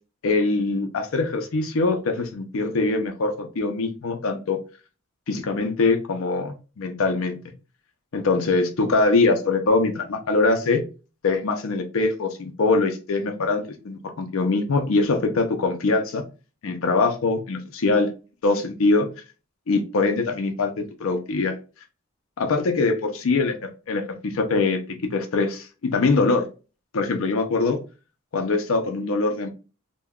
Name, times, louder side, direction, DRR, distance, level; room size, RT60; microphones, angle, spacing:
voice 1, 0.2-4.6 5.3-7.4 8.1-10.8 11.2-16.2 16.6-18.1 18.4-19.1 19.7-21.6 22.4-23.6 23.9-24.8 25.1-26.5 26.9-27.8 28.3-29.5, left 3 dB, 75° left, 4 dB, 0.5 m, -23 dB
2.2 x 2.2 x 3.5 m, 0.33 s
head